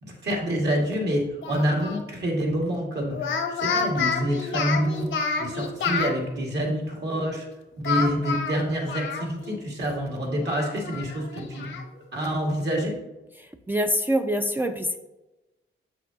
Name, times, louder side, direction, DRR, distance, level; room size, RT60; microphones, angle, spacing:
voice 1, 0.0-5.1 5.4-7.5 7.8-11.7 12.1-13.0, equal, 60° right, 0 dB, 2.0 m, -27 dB
Speech, 1.4-2.0 3.1-6.1 7.8-9.6 9.9-10.0 10.4-11.8, left 5 dB, 75° left, 0.9 m, -29 dB
voice 2, 13.4-15.0, equal, 10° right, 4 dB, 0.4 m, -25 dB
7.5 x 5.8 x 2.8 m, 1.0 s
cardioid pair, 95°, 20 cm